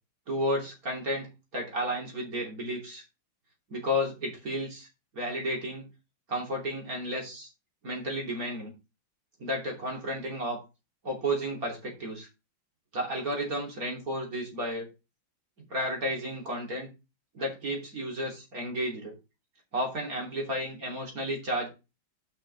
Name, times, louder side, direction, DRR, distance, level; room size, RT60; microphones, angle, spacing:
voice 1, 0.3-3.0 3.7-4.9 5.1-5.9 6.3-7.5 7.8-8.7 9.4-10.6 11.0-12.3 12.9-14.9 15.7-16.9 17.3-19.1 19.7-21.7, equal, 45° right, -1 dB, 3.3 m, -32 dB
6.1 x 5.8 x 5.3 m, 0.28 s
omnidirectional pair, 2.2 m